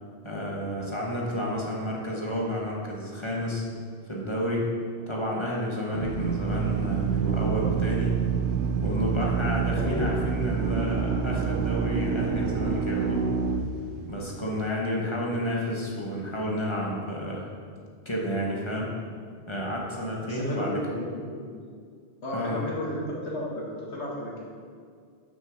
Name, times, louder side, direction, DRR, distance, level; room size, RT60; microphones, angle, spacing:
voice 1, 0.2-3.7 4.1-4.7 5.1-8.1 8.8-13.3 14.1-17.5 18.0-18.9 19.5-20.8 22.3-22.6, equal, 25° left, -3 dB, 1.2 m, -30 dB
Drill, 5.9-14.5, right 6 dB, 90° right, 0.9 m, -27 dB
voice 2, 9.8-10.2 15.0-15.2 20.3-21.6 22.2-24.4, left 1 dB, 75° left, -4 dB, 1.9 m, -33 dB
6.5 x 5.5 x 6.3 m, 2.1 s
omnidirectional pair, 1.1 m